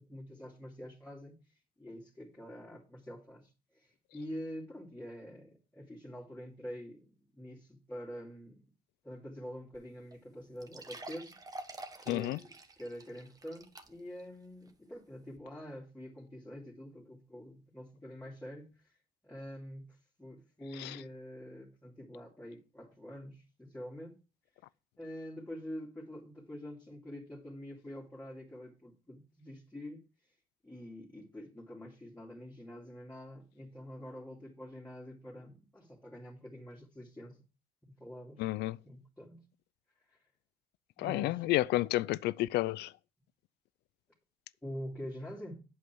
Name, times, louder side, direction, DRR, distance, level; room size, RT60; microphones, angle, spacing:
voice 1, 0.0-1.4 1.8-8.6 9.0-11.7 12.0-12.5 12.8-18.9 19.2-24.2 25.0-30.0 30.6-37.4 37.9-39.4 40.1-40.2 41.0-41.4 44.6-45.6, equal, 10° left, 2.5 m, -46 dB
sound 1, 9.7-9.8 10.1-10.2 10.6-14.2 14.7-14.8 15.4-15.5, right 2 dB, 20° right, 1.3 m, -48 dB
voice 2, 12.1-12.4 20.8-21.0 38.4-38.8 41.0-42.9, left 17 dB, 80° left, 0.5 m, -31 dB
8.4 x 7.6 x 4.5 m
cardioid pair, 110°, 17 cm